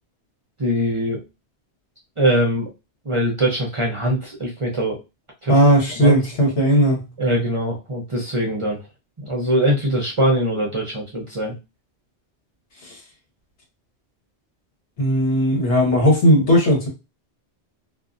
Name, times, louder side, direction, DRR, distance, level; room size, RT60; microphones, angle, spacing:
voice 1, 0.6-1.2 2.2-2.7 3.0-5.0 5.4-5.6 6.0-6.1 7.2-8.8 9.2-11.5, right 1 dB, 35° right, 0.6 m, -22 dB
voice 2, 5.5-7.1 15.0-16.9, equal, 80° left, 1.4 m, -16 dB
2.6 x 2.5 x 2.4 m
omnidirectional pair, 1.2 m